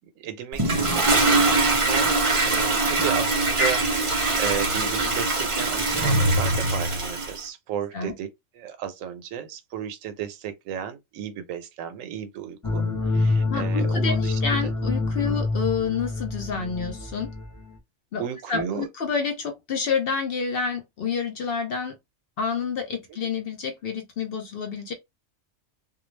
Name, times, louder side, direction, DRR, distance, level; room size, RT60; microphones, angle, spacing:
voice 1, 0.2-8.3 8.6-14.7 15.2-15.4 18.2-18.9 23.1-23.2, right 8 dB, 85° right, 1.0 m, -34 dB
Toilet flush, 0.5-7.4, right 2 dB, 35° right, 0.5 m, -22 dB
sound 1, 12.6-17.8, left 3 dB, 20° left, 0.7 m, -26 dB
voice 2, 13.5-17.3 18.1-18.2 18.5-21.9 22.4-24.9, left 5 dB, 60° left, 0.7 m, -28 dB
2.2 x 2.2 x 3.1 m
omnidirectional pair, 1.3 m